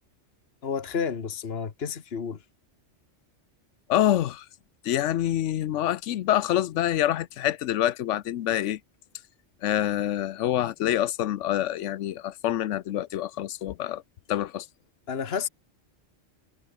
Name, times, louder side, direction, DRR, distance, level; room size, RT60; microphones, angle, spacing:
voice 1, 0.6-2.4 15.1-15.5, left 6 dB, 55° left, 1.6 m, -30 dB
voice 2, 3.9-4.5 4.8-8.8 9.6-14.0 14.3-14.7, left 12 dB, 80° left, 1.0 m, -26 dB
omnidirectional pair, 1.2 m